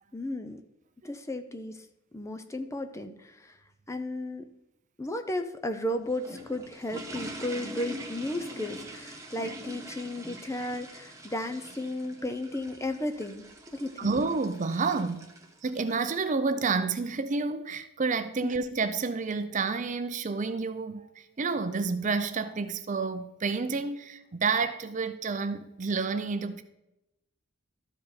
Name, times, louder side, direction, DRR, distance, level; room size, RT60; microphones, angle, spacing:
voice 1, 0.1-0.6 1.0-1.8 2.1-3.6 3.9-4.4 5.0-13.5 13.7-14.2 18.4-18.5, left 1 dB, 15° left, 0.5 m, -34 dB
sound 1, 6.0-16.1, right 1 dB, 15° right, 1.1 m, -43 dB
voice 2, 14.0-15.3 15.6-26.6, right 4 dB, 35° right, 0.5 m, -29 dB
12.5 x 5.0 x 4.2 m
head